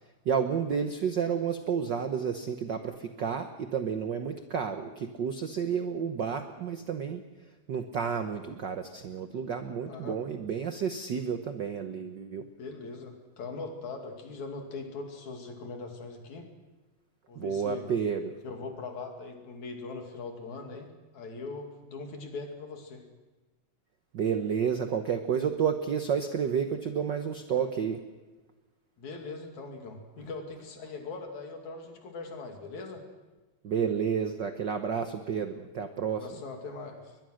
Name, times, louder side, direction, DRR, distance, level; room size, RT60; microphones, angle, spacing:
voice 1, 0.2-7.2 7.7-12.5 17.4-18.4 24.1-28.0 33.6-36.3, right 7 dB, 70° right, 7 dB, 1.0 m, -31 dB
voice 2, 9.8-10.2 12.6-16.5 17.3-17.9 18.4-23.0 29.0-33.0 36.1-37.2, left 3 dB, 75° left, 3 dB, 3.9 m, -41 dB
21.5 x 21.5 x 6.4 m, 1.2 s
omnidirectional pair, 3.4 m